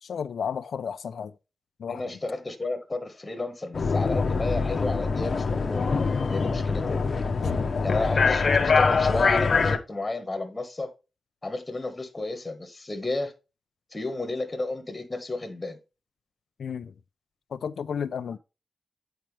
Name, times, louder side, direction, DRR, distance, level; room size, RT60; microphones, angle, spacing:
voice 1, 0.0-1.3 1.8-2.0 7.4-8.2 16.6-16.9 17.5-18.4, left 7 dB, 85° left, 0.4 m, -33 dB
voice 2, 1.9-5.9 6.3-6.8 7.8-10.9 11.4-13.3 13.9-15.8, left 2 dB, 20° left, 1.3 m, -32 dB
sound 1, 3.7-9.8, left 4 dB, 50° left, 0.8 m, -24 dB
sound 2, 4.1-8.8, right 1 dB, 20° right, 3.7 m, -53 dB
9.0 x 4.4 x 3.2 m
wide cardioid pair, 130°, 0 cm